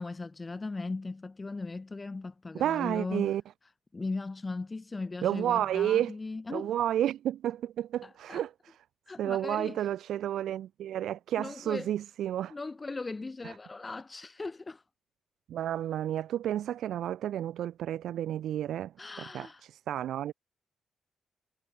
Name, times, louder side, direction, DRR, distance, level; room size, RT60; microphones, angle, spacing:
voice 1, 0.0-3.3 3.9-6.7 8.0-8.4 9.1-9.8 11.4-11.9 12.5-14.8 19.0-19.6, left 3 dB, 15° left, 2.1 m, -38 dB
voice 2, 2.5-3.4 5.2-6.1 6.5-8.8 9.2-12.5 13.4-13.5 15.5-20.3, right 11 dB, 70° right, 1.0 m, -31 dB
cardioid pair, 175°, 0 cm